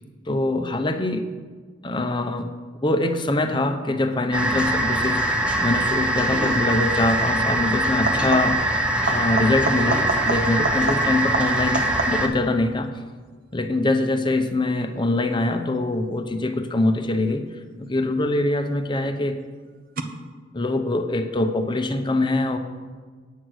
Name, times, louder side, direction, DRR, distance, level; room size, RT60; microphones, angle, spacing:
voice 1, 0.3-1.3 1.8-2.5 2.8-8.6 9.0-12.9 13.5-17.5 17.8-19.4 20.5-22.6, left 2 dB, 25° left, 7 dB, 0.7 m, -23 dB
sound 1, 4.3-12.3, right 1 dB, 5° right, 0.9 m, -23 dB
sound 2, 6.5-6.7 7.9-8.7 9.0-12.4 17.9-18.4 20.0-20.1, right 4 dB, 50° right, 0.8 m, -30 dB
9.3 x 7.8 x 6.3 m, 1.5 s
head